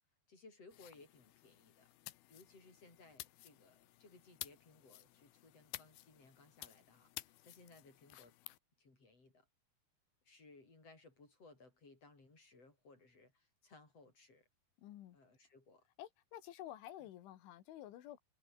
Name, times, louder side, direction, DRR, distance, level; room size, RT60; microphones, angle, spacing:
voice 1, 0.3-1.9 2.3-8.4 8.8-9.5 10.2-14.4 15.1-15.9, left 3 dB, 30° left, 8.0 m, -62 dB
sound 1, 0.7-8.6, left 16 dB, 75° left, 2.4 m, -54 dB
voice 2, 14.8-15.2 16.0-18.2, left 13 dB, 90° left, 4.2 m, -51 dB
omnidirectional pair, 5.3 m